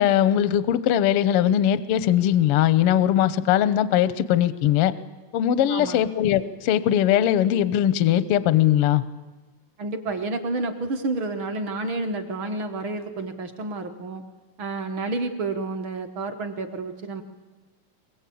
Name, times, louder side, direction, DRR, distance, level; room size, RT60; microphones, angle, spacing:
voice 1, 0.0-4.9 5.3-9.0, left 11 dB, 75° left, 15 dB, 1.3 m, -20 dB
voice 2, 5.7-6.0 9.8-14.2 14.6-17.2, right 3 dB, 55° right, 7 dB, 1.5 m, -30 dB
23.0 x 21.5 x 8.6 m, 1.3 s
omnidirectional pair, 3.8 m